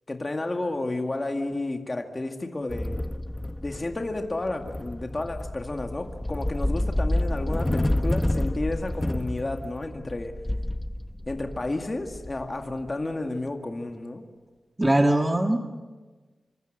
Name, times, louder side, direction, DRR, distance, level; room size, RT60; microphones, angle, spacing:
voice 1, 0.1-3.1 3.6-10.4 11.3-14.3, left 2 dB, 30° left, 4 dB, 2.0 m, -31 dB
sound 1, 2.7-12.9, left 1 dB, 15° left, 1.0 m, -29 dB
voice 2, 14.8-15.6, right 1 dB, 15° right, 4 dB, 1.6 m, -21 dB
26.5 x 25.0 x 7.9 m, 1.3 s
wide cardioid pair, 95°, 0 cm